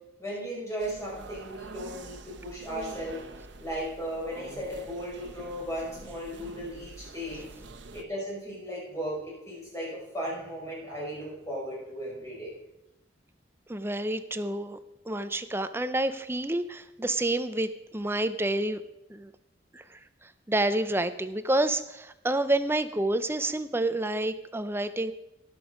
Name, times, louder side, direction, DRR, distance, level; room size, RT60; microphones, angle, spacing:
voice 1, 0.2-3.2 3.6-7.5 7.9-12.5, equal, 15° left, -5 dB, 5.2 m, -36 dB
sound 1, 0.8-8.0, right 2 dB, 85° right, 1.1 m, -46 dB
voice 2, 13.7-14.8 15.1-18.8 19.1-19.3 19.7-25.1, right 1 dB, 15° right, 11 dB, 0.5 m, -29 dB
18.0 x 6.9 x 5.1 m, 0.91 s
head